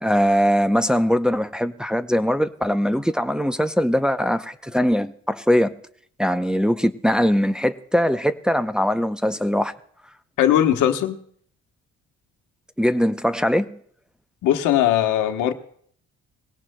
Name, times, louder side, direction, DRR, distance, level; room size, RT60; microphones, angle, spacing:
voice 1, 0.0-5.7 6.2-9.7 12.8-13.8, equal, 5° right, 0.6 m, -21 dB
voice 2, 10.4-11.2 14.4-15.5, left 11 dB, 90° left, 1.1 m, -19 dB
20.5 x 17.0 x 2.2 m
cardioid pair, 90°, 30 cm